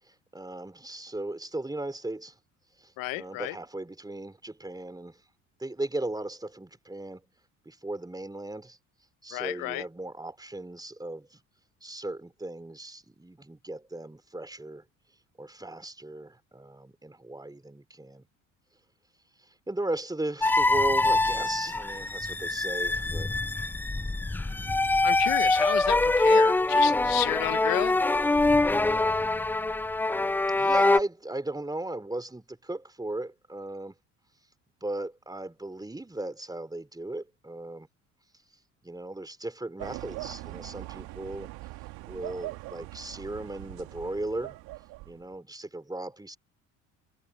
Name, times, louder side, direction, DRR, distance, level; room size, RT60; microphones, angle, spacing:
voice 1, 0.1-2.4 2.8-5.2 5.6-7.2 7.7-8.8 9.2-11.4 11.8-14.8 15.4-18.2 19.7-23.5 30.5-33.9 34.8-37.9 38.8-41.5 42.1-44.6 45.1-46.4, right 2 dB, 10° right, 3.6 m, -37 dB
voice 2, 3.0-3.6 9.3-9.8 25.0-28.0, left 22 dB, 60° left, 0.6 m, -32 dB
sound 1, 20.4-31.0, left 2 dB, 5° left, 0.3 m, -24 dB
sound 2, 39.8-45.4, right 20 dB, 70° right, 2.0 m, -41 dB
hypercardioid pair, 65°, 38 cm